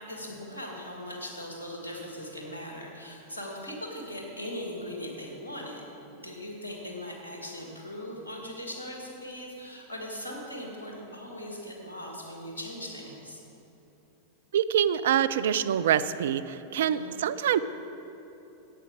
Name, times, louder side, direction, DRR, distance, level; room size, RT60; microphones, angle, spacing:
voice 1, 0.1-5.8 6.1-13.4 16.9-17.2, left 1 dB, 75° left, -1 dB, 2.0 m, -39 dB
voice 2, 14.5-17.6, right 9 dB, 60° right, 14 dB, 0.4 m, -25 dB
11.0 x 8.2 x 4.9 m, 3.0 s
figure-of-eight pair, 90°, 0 cm